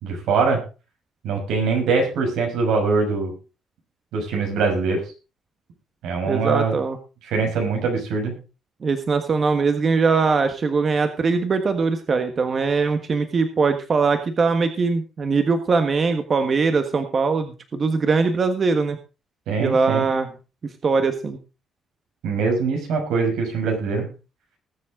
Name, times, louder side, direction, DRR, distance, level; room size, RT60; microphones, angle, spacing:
voice 1, 0.0-0.6 1.2-3.3 4.1-5.0 6.0-6.8 7.2-8.4 19.5-20.1 22.2-24.1, right 4 dB, 90° right, 2 dB, 6.0 m, -22 dB
voice 2, 6.3-7.0 8.8-19.0 19.6-20.3 20.8-21.4, right 4 dB, 35° right, 7 dB, 1.5 m, -21 dB
20.5 x 7.6 x 3.7 m, 0.32 s
cardioid pair, 125°, 0 cm